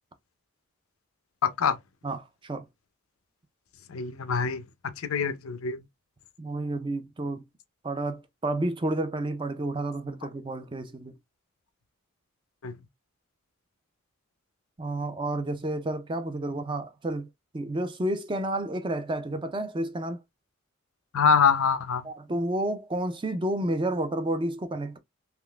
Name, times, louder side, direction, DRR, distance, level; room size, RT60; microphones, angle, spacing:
voice 1, 1.4-1.8 3.9-4.6 5.0-5.8 12.6-12.8 21.1-22.1, left 6 dB, 90° left, 0.6 m, -24 dB
voice 2, 2.0-2.7 6.4-7.4 7.8-11.1 14.8-17.3 17.5-20.2 22.0-25.0, right 1 dB, 25° right, 0.5 m, -30 dB
3.5 x 2.9 x 2.2 m
head